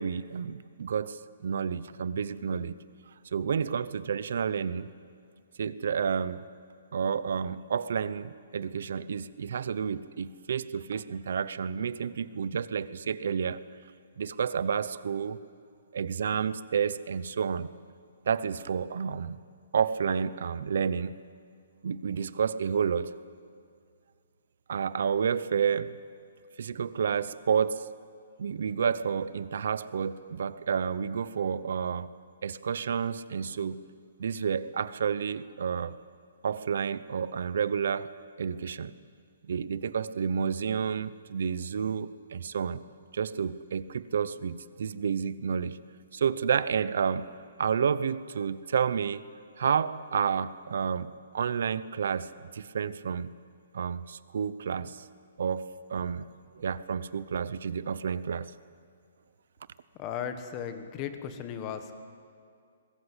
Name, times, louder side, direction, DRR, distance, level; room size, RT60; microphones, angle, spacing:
voice 1, 0.0-2.8 3.3-4.9 5.6-6.5 6.9-13.6 14.2-15.4 15.9-17.7 18.2-19.4 19.7-21.2 21.8-23.2 24.7-26.0 26.6-27.9 28.4-32.1 32.4-33.8 34.2-36.0 36.4-38.1 38.4-38.9 39.4-42.8 43.1-45.8 46.1-49.2 49.6-53.3 53.7-55.1 55.4-56.3 56.6-58.5, right 7 dB, 60° right, 16 dB, 0.8 m, -30 dB
voice 2, 60.0-62.0, left 8 dB, 20° left, 8 dB, 1.4 m, -36 dB
23.0 x 21.0 x 8.2 m, 2.3 s
hypercardioid pair, 175°, 0 cm